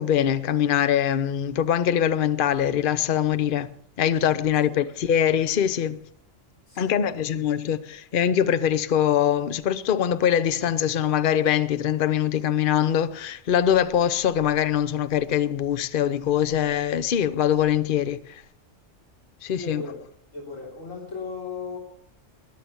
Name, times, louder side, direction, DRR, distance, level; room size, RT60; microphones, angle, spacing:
voice 1, 0.0-3.7 4.0-6.0 6.8-18.4 19.4-19.8, left 9 dB, 50° left, 0.8 m, -23 dB
voice 2, 6.7-7.2 19.6-20.0 20.3-21.8, left 4 dB, 85° left, 4.0 m, -36 dB
21.0 x 7.8 x 7.0 m
omnidirectional pair, 1.3 m